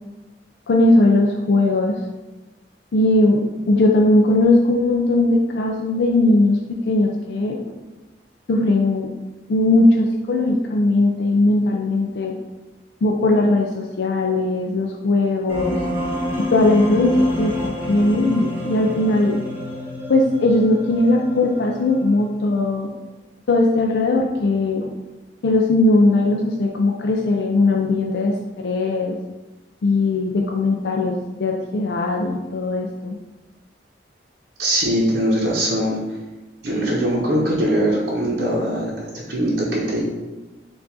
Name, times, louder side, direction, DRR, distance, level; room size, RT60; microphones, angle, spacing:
voice 1, 0.7-2.0 2.9-7.6 8.5-9.1 9.5-12.3 13.0-15.8 16.5-19.4 20.1-22.9 23.5-24.9 25.4-29.1 29.8-33.2, left 2 dB, 70° left, 0 dB, 0.4 m, -19 dB
sound 1, 15.5-22.5, left 1 dB, 15° right, 0.9 m, -28 dB
voice 2, 34.6-36.0 36.6-40.0, right 1 dB, 70° right, -5 dB, 0.8 m, -21 dB
4.6 x 2.5 x 4.0 m, 1.1 s
head